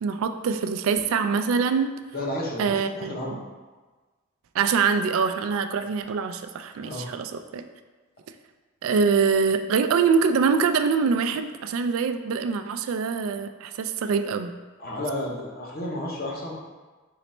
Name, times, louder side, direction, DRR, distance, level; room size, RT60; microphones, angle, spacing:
voice 1, 0.0-1.9 2.6-3.4 4.5-7.6 8.8-14.5, right 5 dB, 80° right, 8 dB, 0.3 m, -24 dB
voice 2, 2.1-3.4 6.8-7.1 14.8-16.5, left 1 dB, 45° left, -2 dB, 0.8 m, -32 dB
4.0 x 3.2 x 4.2 m, 1.3 s
head